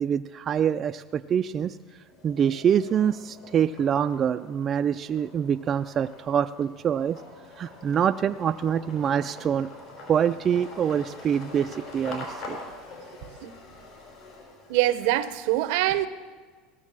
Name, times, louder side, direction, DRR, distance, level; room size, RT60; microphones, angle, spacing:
voice 1, 0.0-1.8 2.2-7.2 7.6-9.7 10.1-12.6, right 8 dB, 35° right, 0.3 m, -25 dB
sound 1, 0.8-1.5 1.9-15.4, left 2 dB, 60° left, 5.0 m, -44 dB
voice 2, 14.7-16.1, right 15 dB, 75° right, 0.7 m, -24 dB
17.0 x 6.3 x 7.4 m
supercardioid pair, 110°, 0 cm